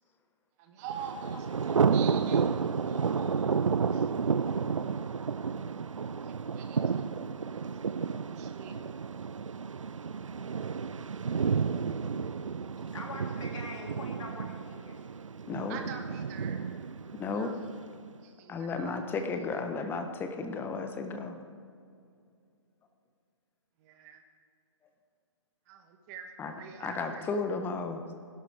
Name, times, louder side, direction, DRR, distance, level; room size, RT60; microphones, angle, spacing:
voice 1, 0.6-4.1 6.1-7.7 8.2-8.9 15.7-16.7 17.4-17.6 18.2-19.0 23.8-24.2 25.7-27.2, right 7 dB, 30° right, 5 dB, 1.1 m, -46 dB
Thunder, 0.9-17.9, right 6 dB, 90° right, 0.4 m, -31 dB
voice 2, 12.8-15.0, left 2 dB, 80° left, -1 dB, 3.3 m, -43 dB
voice 3, 15.5-15.8 17.1-17.5 18.5-21.4 26.4-26.5 26.8-28.0, left 4 dB, 15° left, 6 dB, 0.9 m, -34 dB
17.5 x 12.0 x 3.5 m, 2.4 s
figure-of-eight pair, 130°, 16 cm